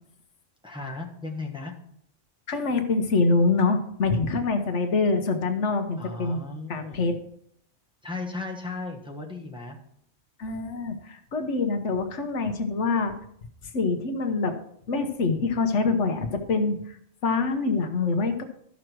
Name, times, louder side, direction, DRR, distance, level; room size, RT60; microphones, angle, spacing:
voice 1, 0.6-1.7 6.0-7.0 8.0-9.8, left 3 dB, 5° right, -1 dB, 1.2 m, -36 dB
voice 2, 2.5-6.4 6.7-7.2 10.4-13.1 13.6-14.5 14.9-17.0 17.2-18.4, left 3 dB, 70° left, 7 dB, 1.3 m, -25 dB
12.5 x 6.2 x 4.6 m, 0.69 s
omnidirectional pair, 1.3 m